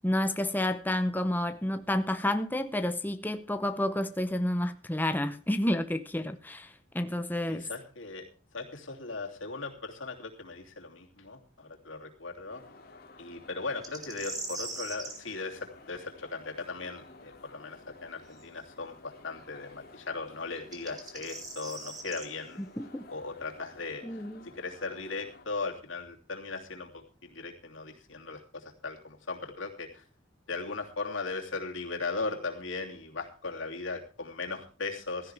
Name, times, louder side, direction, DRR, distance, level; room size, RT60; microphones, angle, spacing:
voice 1, 0.0-7.7 22.6-23.0 24.0-24.4, left 1 dB, 10° left, 0.7 m, -30 dB
voice 2, 7.5-8.3 8.5-12.6 13.2-22.6 23.1-30.0 30.5-35.3, left 3 dB, 90° left, 3.0 m, -38 dB
sound 1, 12.5-25.5, left 2 dB, 50° left, 2.5 m, -53 dB
sound 2, 13.8-15.2 18.3-18.4 20.6-22.3, right 3 dB, 20° right, 2.4 m, -40 dB
16.0 x 14.0 x 3.5 m
head